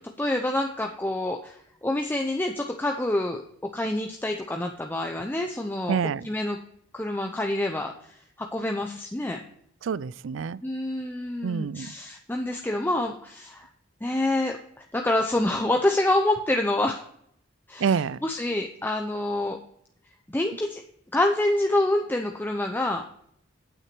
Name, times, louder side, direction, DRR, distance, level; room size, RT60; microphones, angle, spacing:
voice 1, 0.0-3.4 3.7-6.0 6.2-6.6 6.9-9.4 10.6-13.7 14.0-17.0 17.7-19.6 20.3-20.8 21.1-23.0, left 1 dB, 10° left, 3 dB, 0.6 m, -27 dB
voice 2, 5.9-6.3 9.8-10.6 11.4-11.9 17.8-18.2, right 6 dB, 80° right, 20 dB, 0.4 m, -27 dB
8.9 x 8.0 x 4.5 m, 0.69 s
head